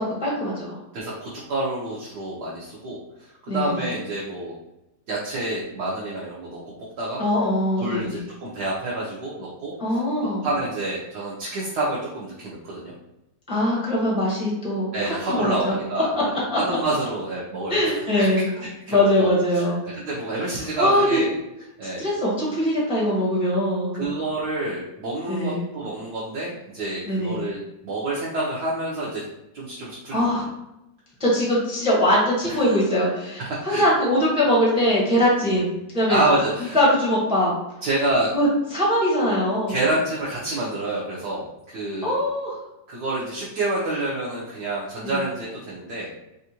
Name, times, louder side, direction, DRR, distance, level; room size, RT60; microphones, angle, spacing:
voice 1, 0.0-0.8 3.5-3.8 7.2-8.2 9.8-10.5 13.5-15.7 16.5-16.6 17.7-18.5 18.9-19.8 20.8-21.2 22.0-24.1 25.3-25.6 27.1-27.4 30.1-30.5 31.2-36.2 36.7-37.5 38.3-39.8 42.0-42.6 45.0-45.2, equal, 5° right, -5 dB, 0.5 m, -22 dB
voice 2, 0.9-4.5 5.1-6.6 7.0-7.2 7.8-12.9 14.9-16.1 16.6-19.3 19.8-21.3 21.8-22.1 23.9-27.6 27.8-29.2 29.5-30.4 32.5-32.7 33.4-33.8 35.4-35.5 36.1-36.8 37.8-38.3 39.7-42.2 42.9-46.1, right 2 dB, 70° right, -6 dB, 1.2 m, -28 dB
3.5 x 2.5 x 2.8 m, 0.89 s
omnidirectional pair, 1.9 m